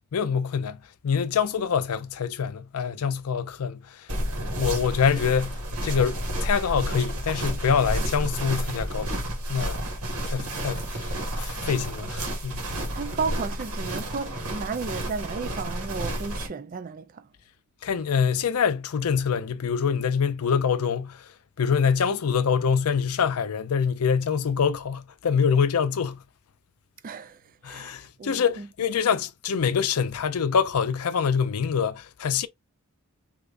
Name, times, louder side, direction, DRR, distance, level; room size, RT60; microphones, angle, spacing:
voice 1, 0.1-4.1 4.6-9.8 10.3-12.6 17.8-21.3 21.6-26.2 27.6-32.5, left 6 dB, 90° left, 0.5 m, -25 dB
sound 1, 4.1-16.5, equal, 90° right, 1.6 m, -31 dB
voice 2, 12.9-17.3 27.0-28.7, right 5 dB, 40° right, 0.4 m, -34 dB
3.4 x 2.8 x 2.5 m
head